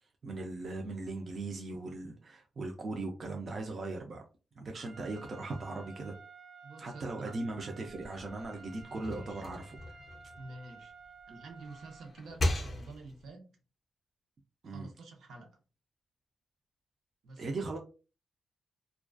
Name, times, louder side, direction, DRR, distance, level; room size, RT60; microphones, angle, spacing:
voice 1, 0.2-4.2 4.6-6.1 6.8-10.0 14.6-14.9 17.4-17.8, right 2 dB, 40° right, 2 dB, 0.4 m, -39 dB
Trumpet, 4.8-12.1, right 4 dB, 90° right, 1.0 m, -53 dB
voice 2, 6.6-7.3 8.9-9.4 10.3-10.9 11.3-13.5 14.6-15.6 17.2-17.7, right 2 dB, 75° right, 3 dB, 0.7 m, -48 dB
sound 1, 7.9-11.0 11.5-13.3, left 1 dB, 30° left, 0.4 m, -38 dB
2.3 x 2.3 x 2.3 m, 0.33 s
wide cardioid pair, 160°, 0 cm